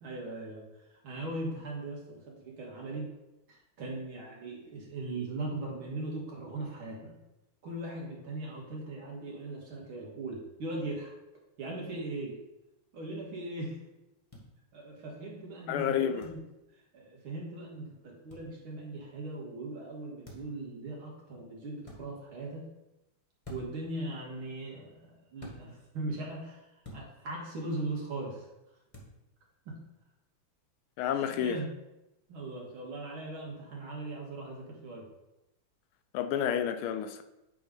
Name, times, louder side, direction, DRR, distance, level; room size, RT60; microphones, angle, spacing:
voice 1, 0.0-3.1 3.5-7.1 7.6-11.1 11.6-12.4 12.9-13.8 14.7-16.4 16.7-22.7 23.5-28.5 29.7-29.8 31.1-31.7 32.3-35.1, right 2 dB, 70° right, 2.4 m, -39 dB
sound 1, 14.3-14.5 16.2-16.4 18.3-18.5 20.2-20.6 21.8-22.0 23.4-23.8 25.4-25.6 26.8-27.1 28.9-29.1, left 1 dB, 20° left, 1.3 m, -47 dB
voice 2, 15.7-16.3 31.0-31.6 36.1-37.2, left 9 dB, 80° left, 1.5 m, -30 dB
9.0 x 3.7 x 5.2 m
omnidirectional pair, 2.4 m